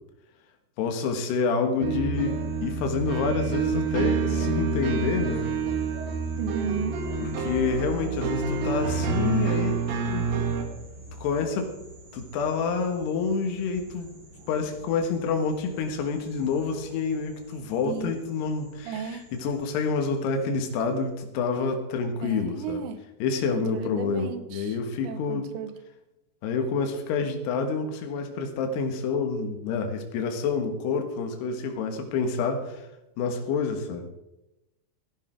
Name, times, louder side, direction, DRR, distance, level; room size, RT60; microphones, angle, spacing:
voice 1, 0.8-5.5 7.2-9.8 10.1-10.3 11.2-11.8 12.1-14.1 14.5-22.8 23.2-25.5 26.4-32.9 33.2-34.1, left 5 dB, 75° left, 5 dB, 3.5 m, -28 dB
sound 1, 1.8-10.6, right 5 dB, 65° right, 3.0 m, -28 dB
sound 2, 2.1-21.1, equal, 35° right, 3.7 m, -47 dB
voice 2, 6.4-7.0 17.8-18.2 18.9-19.2 22.2-23.0 23.5-24.8 25.0-25.8, right 6 dB, 85° right, 11 dB, 3.2 m, -34 dB
14.5 x 11.5 x 4.6 m, 0.95 s
omnidirectional pair, 4.9 m